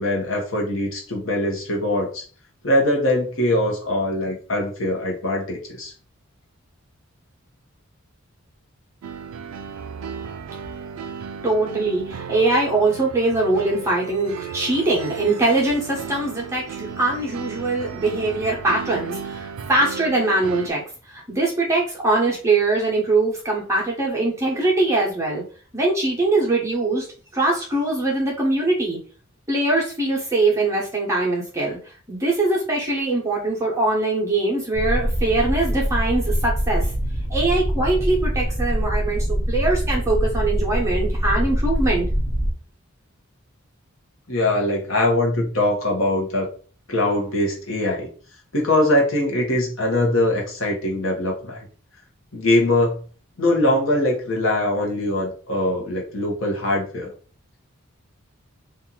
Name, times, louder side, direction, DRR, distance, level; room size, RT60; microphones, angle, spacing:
voice 1, 0.0-2.2 2.6-5.9 44.3-46.5 46.9-48.1 48.5-51.6 52.3-53.0 53.4-57.1, left 1 dB, 65° left, -1 dB, 1.1 m, -22 dB
sound 1, 9.0-20.7, right 6 dB, 80° right, 0.3 m, -35 dB
voice 2, 11.4-20.8 21.1-25.4 25.7-27.1 27.3-29.0 29.5-36.9 37.3-42.1, right 2 dB, 15° right, -4 dB, 1.0 m, -22 dB
sound 2, 34.7-42.5, equal, 5° left, 0.6 m, -23 dB
2.9 x 2.6 x 3.8 m, 0.40 s
head